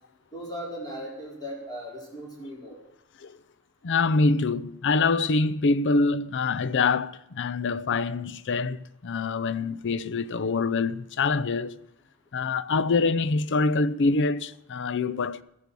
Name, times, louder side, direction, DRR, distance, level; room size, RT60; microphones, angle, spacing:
voice 1, 0.3-2.8, equal, 20° left, 4.4 m, -37 dB
voice 2, 3.8-11.8 12.3-15.4, left 3 dB, 60° left, 0.5 m, -25 dB
14.0 x 10.5 x 6.9 m
head